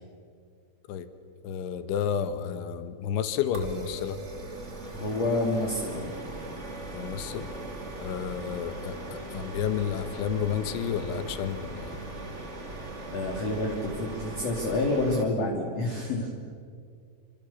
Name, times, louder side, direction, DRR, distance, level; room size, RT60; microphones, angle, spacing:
voice 1, 1.4-4.2 6.9-7.5 8.0-12.0, left 8 dB, 80° left, 10 dB, 3.8 m, -31 dB
sound 1, 3.5-15.2, right 2 dB, 25° right, 1.6 m, -39 dB
voice 2, 4.9-6.1 13.1-16.3, left 2 dB, 40° left, -1 dB, 3.6 m, -28 dB
28.5 x 26.5 x 7.2 m, 2.2 s
omnidirectional pair, 5.4 m